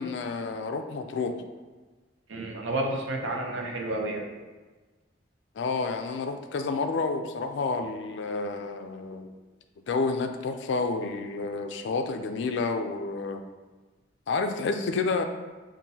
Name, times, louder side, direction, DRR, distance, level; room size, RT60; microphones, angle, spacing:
voice 1, 0.0-1.4 5.6-9.3 9.9-13.4 14.3-15.2, left 4 dB, 65° left, 7 dB, 0.3 m, -29 dB
voice 2, 2.3-4.3, right 1 dB, 80° right, 1 dB, 0.6 m, -30 dB
5.5 x 2.5 x 2.7 m, 1.3 s
head